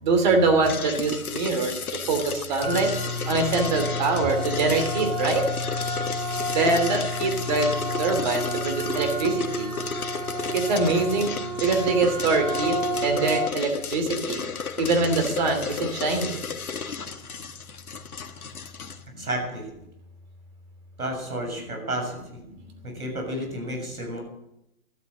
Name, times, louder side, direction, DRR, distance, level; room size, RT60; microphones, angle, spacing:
voice 1, 0.0-2.9 3.3-5.5 6.5-7.7 8.0-9.7 10.5-11.3 11.6-14.4 14.8-16.4 19.1-19.2 22.9-23.0, right 3 dB, 30° right, 6 dB, 2.9 m, -24 dB
sound 1, 0.6-19.0, left 5 dB, 80° left, 1.6 m, -34 dB
sound 2, 2.6-13.5, left 1 dB, 10° right, 0.9 m, -30 dB
voice 2, 19.2-19.7 21.0-22.4 22.8-24.2, right 1 dB, 90° right, 2 dB, 7.3 m, -31 dB
14.5 x 13.0 x 6.6 m, 0.83 s
hypercardioid pair, 155°, 43 cm